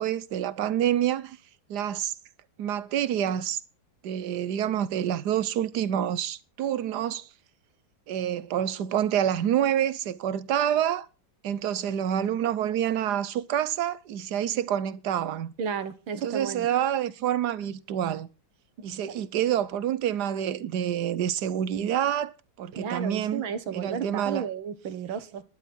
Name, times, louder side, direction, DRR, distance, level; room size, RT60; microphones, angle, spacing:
voice 1, 0.0-1.4 1.7-2.1 2.6-3.6 4.0-7.3 8.1-11.1 11.4-15.5 16.1-18.3 18.8-22.3 22.6-23.4 23.7-24.5, right 10 dB, 65° right, 1.3 m, -27 dB
voice 2, 15.6-16.7 22.7-25.4, right 7 dB, 80° right, 2.1 m, -33 dB
12.5 x 11.5 x 4.3 m
omnidirectional pair, 2.1 m